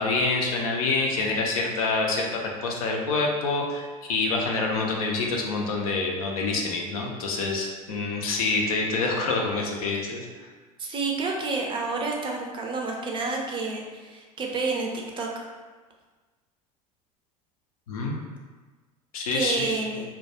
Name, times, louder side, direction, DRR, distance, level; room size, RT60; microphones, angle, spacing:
voice 1, 0.0-10.2 17.9-18.2 19.1-19.7, left 3 dB, 70° left, 0 dB, 0.5 m, -26 dB
voice 2, 10.8-14.9 15.2-15.3 19.3-20.0, right 3 dB, 25° right, 0 dB, 0.4 m, -29 dB
2.2 x 2.2 x 2.7 m, 1.3 s
figure-of-eight pair, 70°, 19 cm